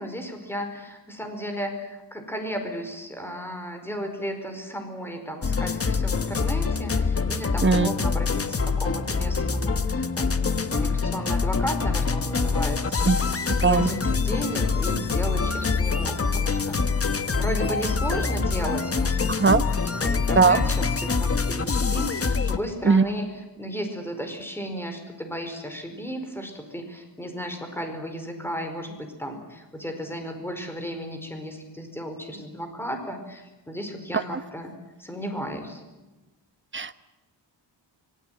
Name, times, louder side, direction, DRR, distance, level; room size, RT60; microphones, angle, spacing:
voice 1, 0.0-19.4 19.8-34.7 35.0-35.8, equal, 5° left, 5 dB, 4.8 m, -34 dB
sound 1, 5.4-22.6, left 4 dB, 30° left, 1.3 m, -25 dB
voice 2, 7.6-7.9 13.1-13.2 13.6-13.9 19.4-19.6 20.4-20.6 22.9-23.0 36.7-37.0, right 5 dB, 25° right, 11 dB, 1.2 m, -18 dB
25.5 x 22.0 x 9.3 m, 1.1 s
wide cardioid pair, 125°, 43 cm